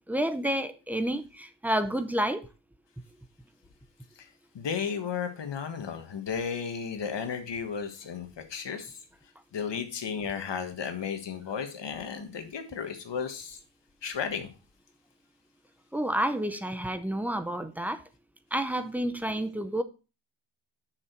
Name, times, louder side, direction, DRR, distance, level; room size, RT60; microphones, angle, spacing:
voice 1, 0.1-2.4 15.9-18.0 18.5-19.8, right 1 dB, 5° right, 0.6 m, -29 dB
voice 2, 4.5-9.0 9.5-13.6 14.0-14.5, left 6 dB, 60° left, 1.4 m, -34 dB
6.8 x 6.0 x 4.4 m
wide cardioid pair, 160°, 49 cm